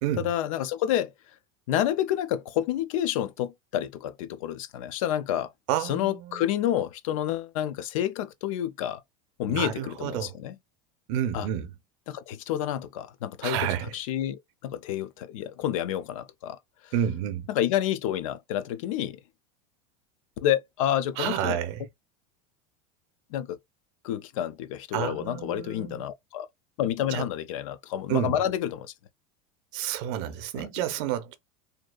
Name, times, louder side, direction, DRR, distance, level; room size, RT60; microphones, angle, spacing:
voice 1, 0.2-1.1 1.7-5.5 5.8-9.0 9.4-10.6 11.3-11.5 12.1-13.7 13.9-16.6 17.5-19.2 20.4-21.6 23.3-23.6 24.0-26.5 26.8-28.9 30.6-30.7, left 11 dB, 80° left, 0.4 m, -29 dB
voice 2, 5.7-6.5 9.5-10.4 11.1-11.7 13.4-13.9 16.9-17.5 21.2-21.9 24.9-26.0 27.1-27.2 28.1-28.4 29.7-31.3, right 11 dB, 55° right, 0.6 m, -30 dB
2.7 x 2.4 x 2.2 m
supercardioid pair, 160°, 17 cm